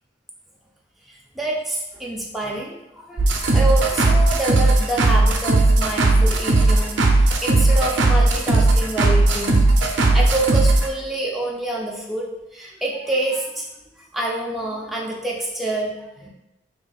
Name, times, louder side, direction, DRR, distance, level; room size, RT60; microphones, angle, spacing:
voice 1, 1.1-13.7 14.0-16.3, right 1 dB, ahead, -4 dB, 0.5 m, -27 dB
sound 1, 3.2-10.9, right 2 dB, 75° right, 0.5 m, -17 dB
4.7 x 2.6 x 2.3 m, 0.93 s
head